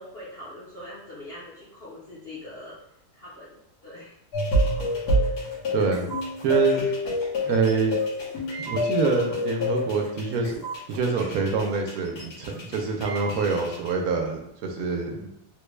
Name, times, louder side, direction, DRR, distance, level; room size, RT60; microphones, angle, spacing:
voice 1, 0.0-2.7 3.1-4.1 5.8-6.0, left 1 dB, 50° left, -9 dB, 0.9 m, -42 dB
sound 1, 4.3-13.9, left 1 dB, 80° left, 1.6 m, -28 dB
voice 2, 5.7-6.0 6.4-6.9 7.4-7.9 8.6-10.5 10.9-15.3, right 4 dB, 70° right, 2 dB, 1.0 m, -25 dB
3.7 x 2.2 x 3.1 m, 0.75 s
omnidirectional pair, 1.7 m